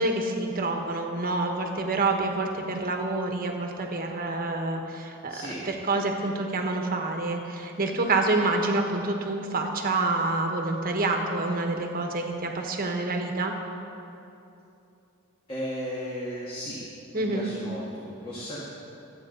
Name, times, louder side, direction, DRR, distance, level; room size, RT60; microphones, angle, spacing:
voice 1, 0.0-13.5 17.1-17.5, right 2 dB, 45° right, 3 dB, 1.4 m, -27 dB
voice 2, 5.3-5.7 15.5-16.8 17.1-18.7, equal, 25° left, -7 dB, 1.8 m, -35 dB
24.5 x 9.0 x 4.0 m, 2.8 s
head